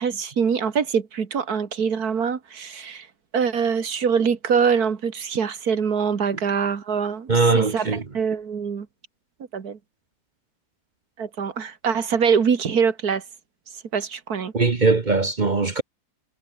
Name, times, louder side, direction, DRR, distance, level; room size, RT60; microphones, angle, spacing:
voice 1, 0.0-3.1 3.3-8.9 9.5-9.8 11.2-13.2 13.9-14.5, right 6 dB, 85° right, 2.3 m, -24 dB
voice 2, 7.3-8.0 14.5-15.8, right 3 dB, 35° right, 1.1 m, -20 dB
omnidirectional pair, 1.6 m